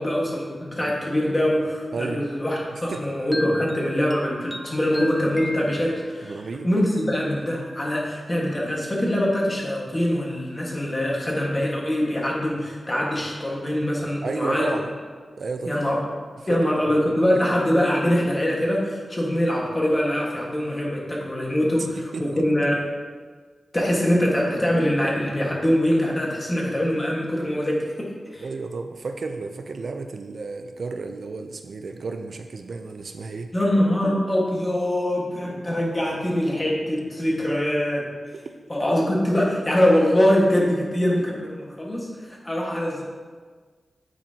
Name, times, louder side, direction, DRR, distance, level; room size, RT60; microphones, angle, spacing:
voice 1, 0.0-6.4 6.6-14.7 15.6-16.1 16.5-22.8 23.7-28.4 33.5-38.1 38.7-43.0, left 1 dB, 20° left, -3 dB, 1.6 m, -23 dB
voice 2, 1.9-2.3 2.7-3.1 6.2-6.7 14.2-14.9 15.4-15.8 16.5-17.4 22.1-22.4 28.4-33.5 38.3-38.4, right 3 dB, 55° right, 6 dB, 0.5 m, -32 dB
sound 1, 2.9-6.4, equal, 5° left, 0.4 m, -36 dB
9.0 x 8.7 x 2.9 m, 1.5 s
wide cardioid pair, 165°, 0 cm